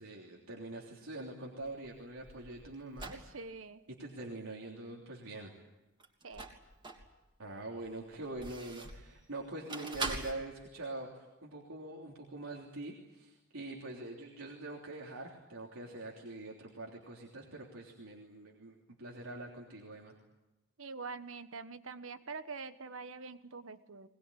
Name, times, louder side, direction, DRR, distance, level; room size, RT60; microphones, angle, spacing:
voice 1, 0.0-3.1 4.0-5.5 7.4-20.1, right 2 dB, 85° right, -2 dB, 3.3 m, -44 dB
sound 1, 1.6-3.3 6.0-7.1 7.6-9.1 9.7-10.3, right 3 dB, 20° right, 3.2 m, -42 dB
voice 2, 3.1-3.8 6.2-6.6 20.8-24.1, right 4 dB, 70° right, 11 dB, 1.3 m, -45 dB
21.5 x 21.0 x 9.9 m, 1.0 s
head